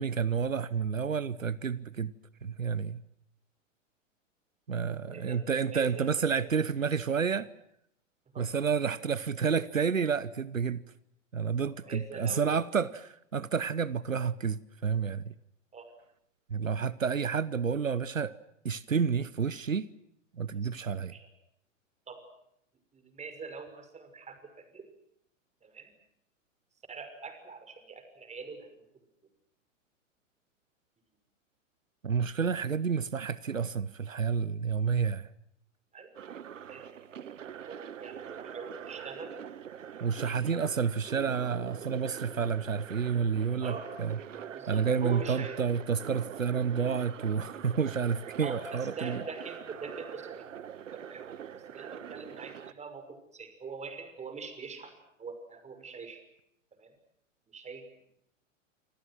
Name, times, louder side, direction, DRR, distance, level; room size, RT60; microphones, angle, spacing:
voice 1, 0.0-2.1 2.4-3.0 4.7-7.5 8.4-10.8 11.3-15.3 16.5-18.4 18.6-19.9 20.4-21.1 32.0-35.3 40.0-44.2 44.7-49.2, right 6 dB, 90° right, 1.0 m, -30 dB
voice 2, 4.9-5.4 5.7-6.1 6.4-6.5 8.3-8.5 11.9-12.4 15.7-15.9 21.1-21.3 22.1-22.2 22.9-24.8 25.6-25.9 26.9-28.8 35.9-36.1 36.7-37.2 37.6-39.4 40.2-40.4 43.6-43.9 44.5-45.6 48.4-50.5 50.9-51.3 51.5-54.9 55.2-56.2 56.8-56.9 57.5-57.8, right 4 dB, 15° right, 5.9 m, -43 dB
sound 1, 36.1-52.7, right 9 dB, 75° right, 1.4 m, -44 dB
28.0 x 26.5 x 6.1 m
figure-of-eight pair, 100°, 38 cm